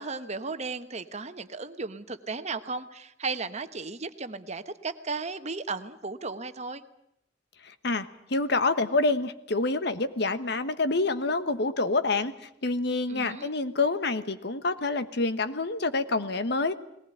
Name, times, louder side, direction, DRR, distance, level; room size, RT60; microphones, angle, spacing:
voice 1, 0.0-6.8 13.1-13.5, right 4 dB, 35° right, 10 dB, 1.2 m, -35 dB
voice 2, 7.8-12.3 12.6-16.7, left 3 dB, 65° left, 11 dB, 1.3 m, -27 dB
20.0 x 19.5 x 9.9 m, 0.80 s
head